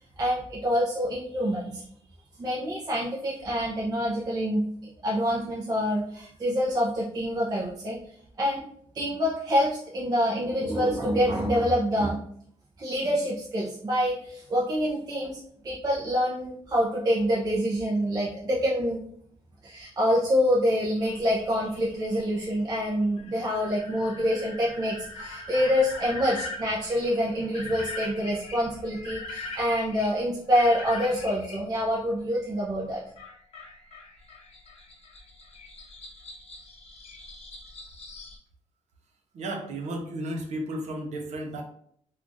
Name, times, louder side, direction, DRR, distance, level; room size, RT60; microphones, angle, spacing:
voice 1, 0.2-1.8 2.4-4.7 5.0-8.0 8.4-8.7 8.9-12.2 12.8-19.0 19.6-33.0, equal, 30° right, -6 dB, 0.6 m, -26 dB
sound 1, 21.0-31.6 33.2-38.4, left 2 dB, 55° left, 0.9 m, -42 dB
voice 2, 39.3-41.6, right 1 dB, 70° right, 2 dB, 0.6 m, -33 dB
3.1 x 2.4 x 2.5 m, 0.66 s
cardioid pair, 115°, 12 cm